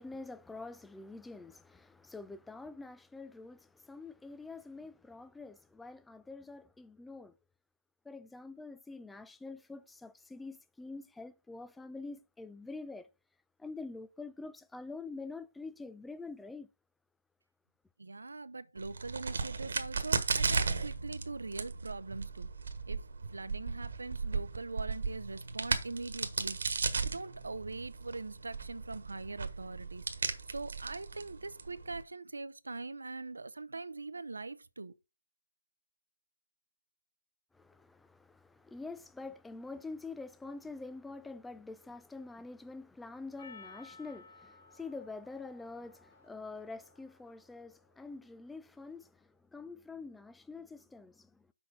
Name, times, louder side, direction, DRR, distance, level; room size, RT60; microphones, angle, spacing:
voice 1, 0.0-7.3 8.1-13.1 13.6-16.7 37.5-51.5, left 3 dB, 5° left, 0.3 m, -46 dB
voice 2, 18.0-22.5 22.9-23.0 23.3-34.9, right 3 dB, 80° right, 0.7 m, -42 dB
Crack, 18.8-32.0, right 4 dB, 65° right, 1.4 m, -36 dB
Percussion, 43.4-48.0, left 4 dB, 45° left, 2.4 m, -57 dB
6.3 x 4.4 x 5.7 m
figure-of-eight pair, 155°, 0 cm